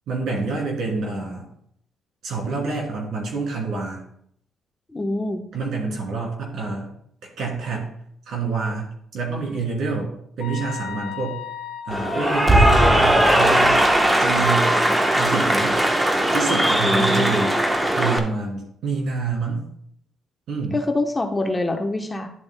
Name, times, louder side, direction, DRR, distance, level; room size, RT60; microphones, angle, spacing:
voice 1, 0.1-1.5 2.2-4.0 5.5-6.9 7.4-7.9 8.3-11.4 11.9-13.8 14.2-14.7 15.1-15.8 16.3-19.6 20.5-20.8, right 4 dB, 70° right, -1 dB, 3.0 m, -27 dB
voice 2, 4.9-5.4 16.8-17.4 20.7-22.3, left 2 dB, 20° left, 4 dB, 0.9 m, -25 dB
sound 1, 10.4-13.7, left 10 dB, 80° left, 0.9 m, -35 dB
Cheering / Applause, 11.9-18.2, right 1 dB, 15° right, 1.0 m, -18 dB
11.0 x 7.6 x 2.2 m, 0.69 s
cardioid pair, 90°, 0 cm